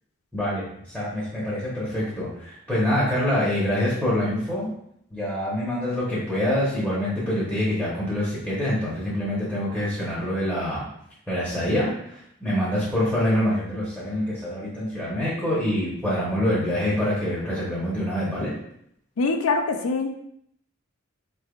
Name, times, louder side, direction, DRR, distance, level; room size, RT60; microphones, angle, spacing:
voice 1, 0.3-4.7 5.1-10.8 11.3-18.5, left 1 dB, 5° right, -8 dB, 0.9 m, -25 dB
voice 2, 19.2-20.2, left 3 dB, 75° left, 5 dB, 0.4 m, -24 dB
4.5 x 3.3 x 2.4 m, 0.74 s
head